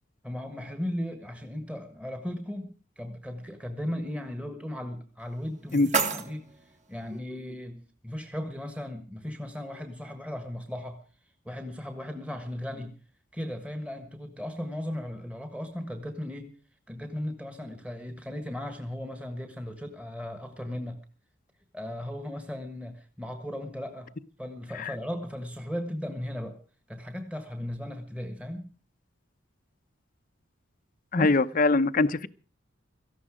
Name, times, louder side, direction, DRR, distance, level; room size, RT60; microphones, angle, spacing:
voice 1, 0.2-6.5 6.9-11.0 11.4-13.0 13.3-16.5 16.9-21.0 21.7-24.1 24.4-26.6 26.9-28.7 31.2-31.4, left 1 dB, 5° right, 6 dB, 1.5 m, -36 dB
sound 1, 5.2-7.2, right 4 dB, 40° right, 1.9 m, -32 dB
voice 2, 31.1-32.3, left 3 dB, 45° left, 13 dB, 0.7 m, -23 dB
17.5 x 14.0 x 5.0 m, 0.39 s
head